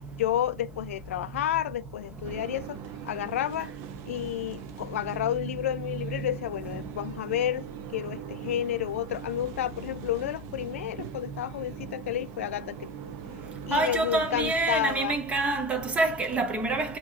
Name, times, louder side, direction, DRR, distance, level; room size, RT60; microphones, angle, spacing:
voice 1, 0.2-3.7 4.1-7.7 7.9-12.9 13.6-15.2, left 11 dB, 85° left, 0.4 m, -31 dB
sound 1, 2.2-14.7, right 10 dB, 45° right, 0.8 m, -42 dB
voice 2, 13.7-17.0, right 2 dB, 15° right, 1.1 m, -26 dB
7.0 x 3.1 x 4.5 m
supercardioid pair, 135°, 7 cm